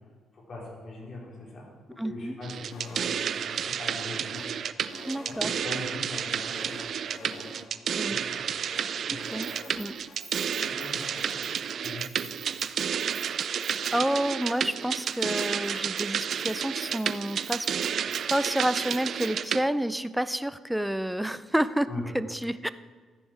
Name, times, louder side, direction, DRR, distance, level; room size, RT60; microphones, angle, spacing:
voice 1, 0.3-1.7 2.0-4.4 5.3-6.8 7.2-7.5 8.1-8.4 9.1-9.2 10.8-12.0 18.0-18.2 21.9-22.0, left 2 dB, 45° left, -3 dB, 4.5 m, -41 dB
voice 2, 2.0-2.4 5.1-5.5 8.0-8.2 9.1-10.0 13.9-17.7 17.9-21.9 22.1-22.7, right 1 dB, 5° right, 14 dB, 0.5 m, -29 dB
sound 1, 2.4-19.6, right 8 dB, 60° right, 0.4 m, -31 dB
sound 2, 2.7-3.3 3.5-3.6 4.0-5.8 6.1-7.6 7.9-8.0 8.3-10.2 10.5-11.3, left 2 dB, 70° left, 2.8 m, -47 dB
Keys jangling, 9.2-14.2 14.4-14.7 15.0-19.5, right 5 dB, 40° right, 2.7 m, -48 dB
13.0 x 9.8 x 4.7 m, 1.5 s
cardioid pair, 90°, 0 cm